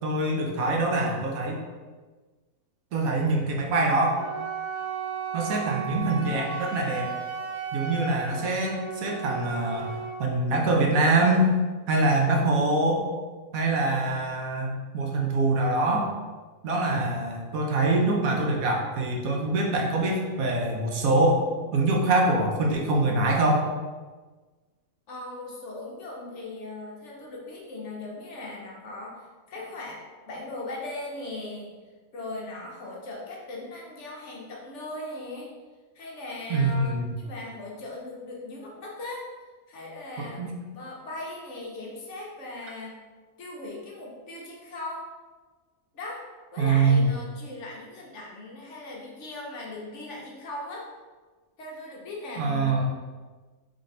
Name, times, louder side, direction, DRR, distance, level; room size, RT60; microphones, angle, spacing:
voice 1, 0.0-1.6 2.9-4.2 5.3-7.1 7.7-11.5 11.9-13.1 13.5-16.1 16.6-21.4 21.7-23.7 36.5-37.1 40.2-40.5 46.6-47.1 52.4-52.8, right 2 dB, 85° right, 0 dB, 1.2 m, -24 dB
Wind instrument woodwind instrument, 4.2-10.2, right 5 dB, 65° right, 0.9 m, -34 dB
voice 2, 25.1-31.7 32.1-35.5 35.9-39.2 39.7-40.4 40.7-43.0 43.4-45.1 45.9-46.2 46.5-50.9 51.6-52.8, left 2 dB, 60° left, -2 dB, 1.1 m, -39 dB
3.7 x 3.3 x 3.8 m, 1.4 s
omnidirectional pair, 1.4 m